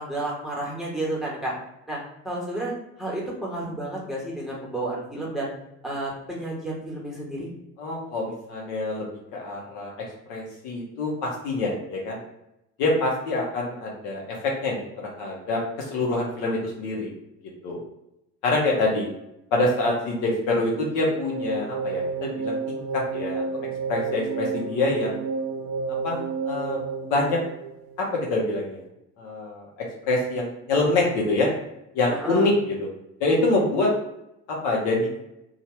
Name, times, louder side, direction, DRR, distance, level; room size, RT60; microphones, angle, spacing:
voice 1, 0.0-1.5 1.9-2.7 3.0-5.5 5.8-7.5 32.1-32.5, right 1 dB, ahead, -5 dB, 1.2 m, -31 dB
voice 2, 7.8-9.1 9.3-9.9 10.3-12.2 12.8-17.1 17.6-17.8 18.4-19.1 19.5-23.4 23.9-25.2 26.0-26.8 27.1-27.4 28.0-28.8 29.2-31.5 31.9-32.9 33.2-33.9 34.5-35.2, left 2 dB, 55° left, -2 dB, 0.9 m, -25 dB
sound 1, 21.0-28.2, right 5 dB, 75° right, 0.5 m, -31 dB
2.7 x 2.4 x 3.1 m, 0.84 s
figure-of-eight pair, 60°, 39 cm